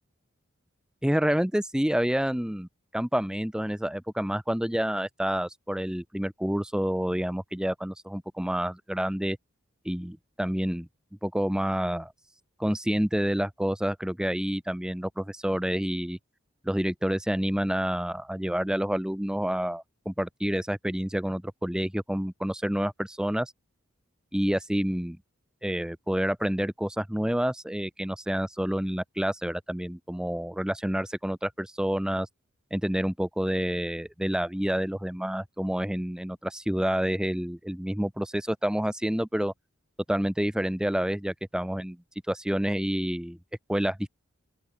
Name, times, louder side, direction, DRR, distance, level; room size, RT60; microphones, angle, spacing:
voice 1, 1.0-2.7 2.9-9.4 9.9-10.9 11.2-12.1 12.6-16.2 16.6-23.5 24.3-25.2 25.6-32.3 32.7-39.5 40.1-42.0 42.3-43.4 43.7-44.1, equal, 5° right, 0.5 m, -28 dB
open air
head